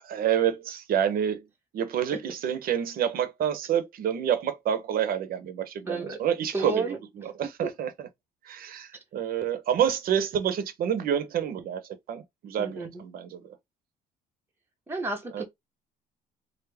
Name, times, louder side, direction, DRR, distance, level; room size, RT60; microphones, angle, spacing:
voice 1, 0.1-1.5 1.7-8.1 8.4-11.8 12.1-13.5 15.3-15.4, right 9 dB, 60° right, 0.8 m, -28 dB
voice 2, 5.8-6.2 6.5-7.0 7.6-7.7 12.6-13.0 14.9-15.4, right 3 dB, 15° right, 0.8 m, -31 dB
3.4 x 2.0 x 3.3 m
cardioid pair, 110°, 17 cm